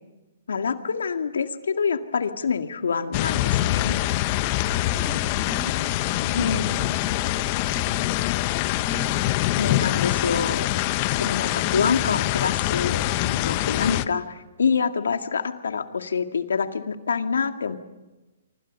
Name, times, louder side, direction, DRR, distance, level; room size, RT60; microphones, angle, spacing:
voice 1, 0.5-4.0 6.3-6.6 9.6-10.6 11.1-17.8, left 6 dB, 80° left, 7 dB, 2.0 m, -26 dB
sound 1, 3.1-14.0, left 16 dB, 40° left, 0.9 m, -24 dB
voice 2, 4.7-5.7 6.1-8.2 8.8-9.3, right 1 dB, 5° right, -3 dB, 4.1 m, -39 dB
26.0 x 25.5 x 5.4 m, 1.0 s
hypercardioid pair, 135°, 0 cm